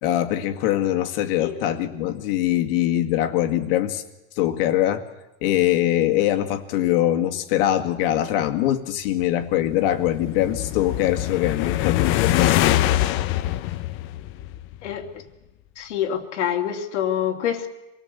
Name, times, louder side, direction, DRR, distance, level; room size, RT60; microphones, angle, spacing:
voice 1, 0.0-4.0 4.4-5.0 5.4-12.8, left 12 dB, 55° left, 6 dB, 2.1 m, -22 dB
sound 1, 9.4-14.9, left 14 dB, 35° left, 0.8 m, -24 dB
voice 2, 15.8-17.7, left 9 dB, 90° left, 3 dB, 2.9 m, -26 dB
26.5 x 18.5 x 8.2 m, 0.99 s
supercardioid pair, 155°, 34 cm